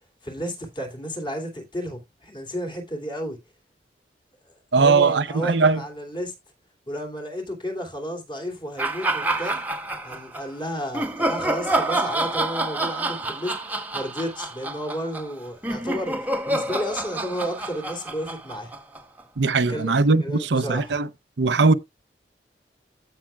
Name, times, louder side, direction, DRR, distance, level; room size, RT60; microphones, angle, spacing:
voice 1, 0.2-3.4 4.7-6.3 6.9-9.6 10.0-18.7 19.6-21.0, equal, 30° left, 2.9 m, -32 dB
voice 2, 4.7-5.8 19.4-21.1 21.4-21.7, right 4 dB, 90° right, 0.7 m, -19 dB
sound 1, 8.8-10.4 10.9-19.2, right 2 dB, 10° right, 1.1 m, -28 dB
16.0 x 5.7 x 2.3 m
head